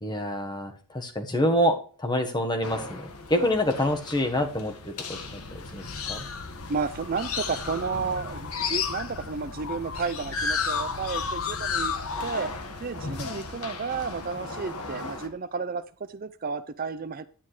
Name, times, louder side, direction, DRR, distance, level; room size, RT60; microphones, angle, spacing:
voice 1, 0.0-6.2, equal, 20° left, 5 dB, 1.3 m, -27 dB
sound 1, 2.6-15.3, left 3 dB, 85° left, 1.6 m, -41 dB
sound 2, 5.1-14.2, left 5 dB, 70° left, 1.2 m, -33 dB
voice 2, 6.7-11.9 12.2-17.3, right 5 dB, 40° right, 11 dB, 0.5 m, -32 dB
10.5 x 9.7 x 3.2 m, 0.40 s
head